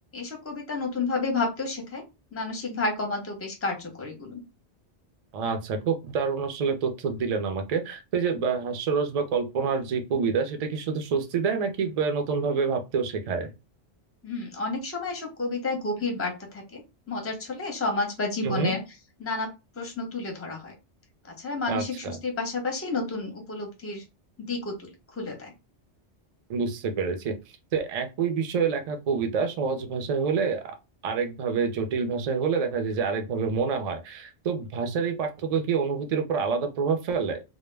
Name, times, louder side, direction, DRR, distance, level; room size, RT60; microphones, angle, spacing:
voice 1, 0.1-2.0 2.3-4.4 14.2-16.8 17.1-18.8 19.2-19.5 19.8-20.7 21.4-24.0 24.4-25.5, left 3 dB, 15° left, 2 dB, 0.5 m, -31 dB
voice 2, 5.3-13.5 18.4-18.7 21.7-22.2 26.5-27.3 27.7-30.7 31.0-37.4, right 5 dB, 55° right, 6 dB, 0.4 m, -27 dB
2.1 x 2.1 x 3.2 m, 0.26 s
omnidirectional pair, 1.2 m